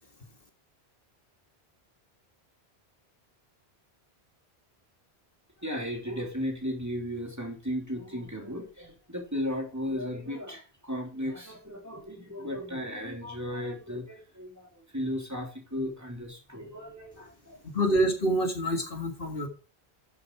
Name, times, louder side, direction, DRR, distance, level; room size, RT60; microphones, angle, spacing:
voice 1, 5.6-17.6, equal, 15° right, 1 dB, 3.2 m, -35 dB
voice 2, 17.7-19.5, right 1 dB, 60° left, 4 dB, 2.1 m, -26 dB
12.5 x 7.8 x 4.6 m, 0.34 s
omnidirectional pair, 1.1 m